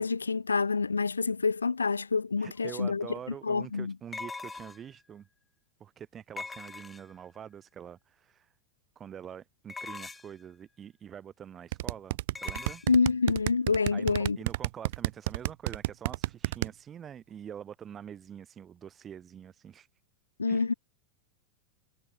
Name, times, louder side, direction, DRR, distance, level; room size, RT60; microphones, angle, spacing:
voice 1, 0.0-3.1 3.4-3.9 12.9-14.4 20.4-20.7, left 4 dB, 75° left, 0.3 m, -27 dB
voice 2, 2.4-5.3 5.8-8.5 9.0-12.8 13.9-19.9 20.5-20.7, right 8 dB, 25° right, 7.5 m, -45 dB
sound 1, 2.6-2.7 4.1-5.0 6.4-7.3 9.7-10.4 12.4-12.9, left 4 dB, 10° left, 3.9 m, -41 dB
sound 2, 11.7-16.7, right 18 dB, 50° right, 0.8 m, -30 dB
figure-of-eight pair, 90°, 0 cm